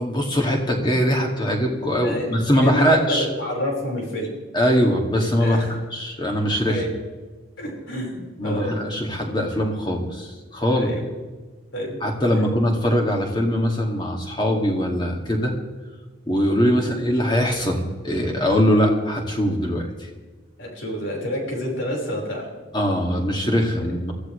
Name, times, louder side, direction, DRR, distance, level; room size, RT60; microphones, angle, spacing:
voice 1, 0.0-3.3 4.5-6.8 8.4-10.9 12.0-15.5 16.3-20.1 22.7-24.1, equal, 25° left, 1 dB, 2.3 m, -22 dB
voice 2, 2.6-4.3 5.4-5.7 6.7-6.9 7.6-8.7 10.7-11.0 11.7-12.0 20.6-22.5, equal, 75° left, -1 dB, 5.1 m, -28 dB
23.0 x 15.0 x 3.3 m, 1.3 s
head